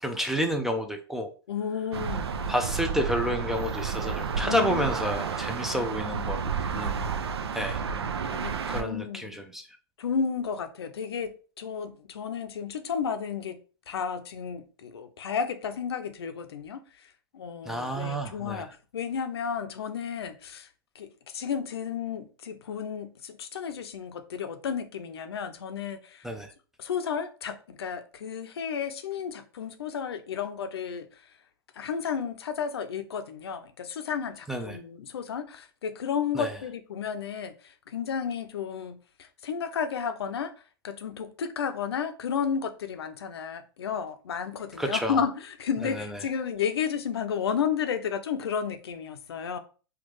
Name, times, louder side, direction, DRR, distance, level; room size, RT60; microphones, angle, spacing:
voice 1, 0.0-1.3 2.5-7.1 7.5-7.8 8.7-9.6 17.7-18.7 26.2-26.5 34.5-34.8 36.3-36.5 44.8-45.2 45.9-46.0, equal, 5° right, 0.5 m, -30 dB
voice 2, 1.5-2.3 4.4-4.9 5.7-5.9 7.9-9.4 10.0-13.6 13.9-16.8 17.3-20.7 21.0-26.3 26.8-31.1 31.8-40.5 40.8-49.6, left 7 dB, 80° left, 0.6 m, -32 dB
sound 1, 1.9-8.8, right 6 dB, 85° right, 0.5 m, -31 dB
4.3 x 2.4 x 3.1 m
hypercardioid pair, 110°, 13 cm